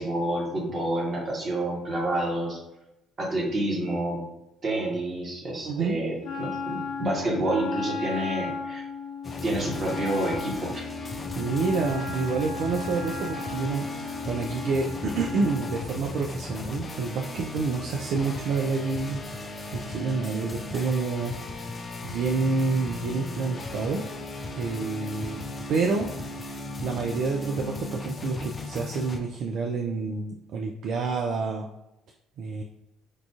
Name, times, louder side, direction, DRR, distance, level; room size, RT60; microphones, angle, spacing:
voice 1, 0.0-2.6 3.2-4.2 4.6-8.8 9.4-10.9, right 1 dB, 40° right, -2 dB, 1.2 m, -28 dB
voice 2, 5.6-6.0 11.3-21.3 22.0-24.0 24.5-25.4 25.7-26.1 26.4-31.7 32.4-32.6, right 4 dB, 60° right, 1 dB, 0.3 m, -28 dB
Wind instrument woodwind instrument, 6.2-15.8, left 4 dB, 75° left, 0.7 m, -35 dB
sound 1, 9.2-29.2, left 2 dB, 35° left, 0.4 m, -37 dB
4.6 x 2.4 x 2.3 m, 0.88 s
hypercardioid pair, 50°, 0 cm